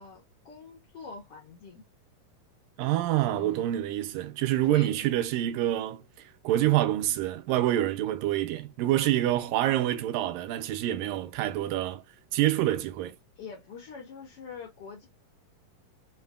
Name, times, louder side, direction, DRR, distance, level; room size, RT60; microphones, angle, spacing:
voice 1, 0.0-1.8 3.2-3.8 4.6-5.0 13.4-15.1, left 6 dB, 90° left, 1.2 m, -44 dB
voice 2, 2.8-6.0 6.4-12.0 12.3-13.2, right 13 dB, 80° right, 2.2 m, -26 dB
5.5 x 2.7 x 2.4 m
omnidirectional pair, 4.2 m